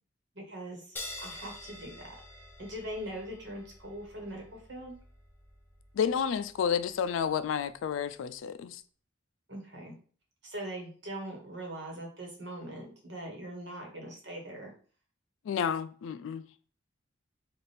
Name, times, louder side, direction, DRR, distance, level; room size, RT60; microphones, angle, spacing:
voice 1, 0.3-1.0 1.2-1.9 2.6-5.0 9.5-9.9 10.4-14.7, right 1 dB, 60° right, 1.2 m, -41 dB
sound 1, 1.0-7.9, left 1 dB, 10° left, 0.5 m, -48 dB
voice 2, 5.9-8.8 15.4-16.5, left 7 dB, 80° left, 0.3 m, -30 dB
4.1 x 2.4 x 3.3 m
head